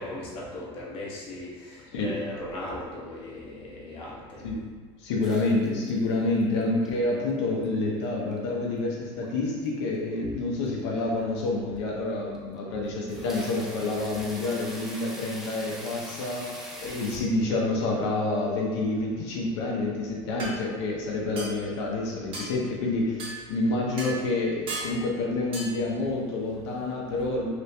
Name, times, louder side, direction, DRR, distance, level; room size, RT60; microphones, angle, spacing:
voice 1, 0.0-4.5, left 1 dB, 40° left, -4 dB, 0.9 m, -38 dB
voice 2, 5.0-16.5 16.8-23.2 23.5-27.5, left 2 dB, 90° left, -3 dB, 0.7 m, -28 dB
sound 1, 5.2-6.1 6.4-6.9 7.3-7.9 8.3-8.4 9.2-9.7 9.9-10.1 10.7-10.8 11.2-11.3 11.8-11.9 12.3-12.6 12.9-17.2, equal, ahead, 0.5 m, -42 dB
sound 2, 20.4-20.5 21.4-21.6 22.3-22.5 23.2-23.4 24.0-24.2 24.7-25.0 25.5-25.7, right 2 dB, 40° right, 0.9 m, -35 dB
3.0 x 2.8 x 3.2 m, 1.5 s
supercardioid pair, 130°, 14 cm